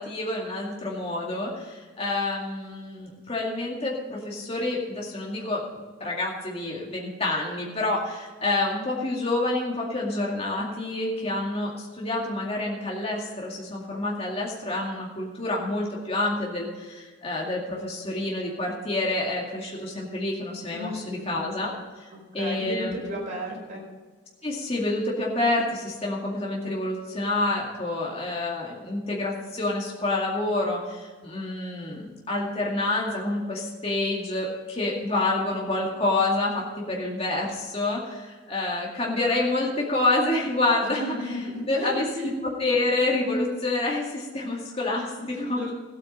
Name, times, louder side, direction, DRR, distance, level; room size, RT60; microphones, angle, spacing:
voice 1, 0.0-21.7 22.0-23.0 24.4-41.4 41.7-45.6, left 2 dB, 30° left, -2 dB, 2.2 m, -28 dB
voice 2, 20.7-21.6 22.1-23.8 40.8-42.3 45.3-45.7, equal, 40° right, -2 dB, 4.7 m, -34 dB
15.0 x 8.7 x 5.5 m, 1.4 s
head